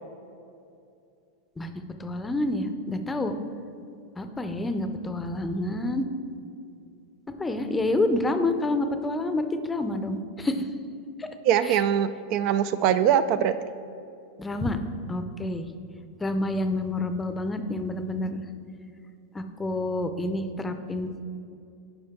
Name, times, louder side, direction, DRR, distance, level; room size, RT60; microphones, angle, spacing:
voice 1, 1.6-3.3 4.2-6.1 7.3-10.7 11.2-11.3 11.7-11.8 14.4-14.8 15.1-15.7 16.2-18.4 19.3-21.1, left 2 dB, 15° left, 8 dB, 0.6 m, -28 dB
voice 2, 11.5-13.6, right 9 dB, 55° right, 12 dB, 0.3 m, -22 dB
10.5 x 5.1 x 3.7 m, 2.6 s
hypercardioid pair, 105°, 0 cm